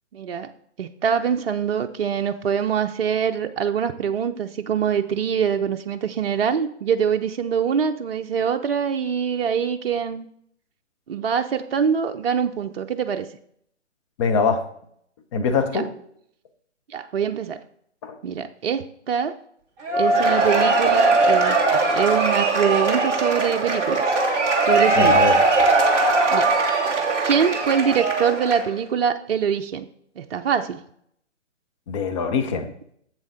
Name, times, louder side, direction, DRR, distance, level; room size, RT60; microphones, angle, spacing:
voice 1, 0.1-0.5 0.8-10.3 11.1-13.3 15.7-15.8 16.9-17.6 18.2-19.3 20.0-24.0 24.6-25.2 26.3-26.5 27.2-29.9 30.2-30.8, right 7 dB, 55° right, 6 dB, 0.6 m, -24 dB
voice 2, 14.2-14.6 15.3-15.9 18.0-18.2 25.0-25.4 31.9-32.7, left 5 dB, 25° left, 6 dB, 0.8 m, -22 dB
Cheering / Applause / Crowd, 19.8-28.8, right 3 dB, 10° right, 0.6 m, -20 dB
7.6 x 7.1 x 3.8 m, 0.67 s
figure-of-eight pair, 135°, 36 cm